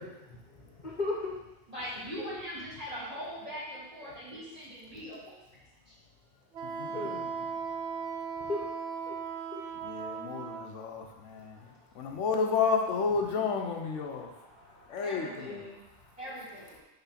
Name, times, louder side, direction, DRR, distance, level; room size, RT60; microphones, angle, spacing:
voice 1, 0.0-1.4 6.9-7.2 8.4-8.7 9.1-9.2 9.5-9.6 11.6-11.8 12.1-12.2 14.1-15.8, left 2 dB, 45° left, -3 dB, 1.1 m, -39 dB
voice 2, 1.7-5.4 5.9-6.0 15.0-15.7 16.2-16.8, equal, 30° right, -9 dB, 2.6 m, -41 dB
Wind instrument woodwind instrument, 6.5-10.7, right 6 dB, 75° right, 0.9 m, -37 dB
voice 3, 6.6-7.1 9.8-11.7 11.9-14.3 14.9-15.5, left 5 dB, 90° left, 3 dB, 1.1 m, -31 dB
5.9 x 3.8 x 5.7 m, 0.94 s
omnidirectional pair, 1.2 m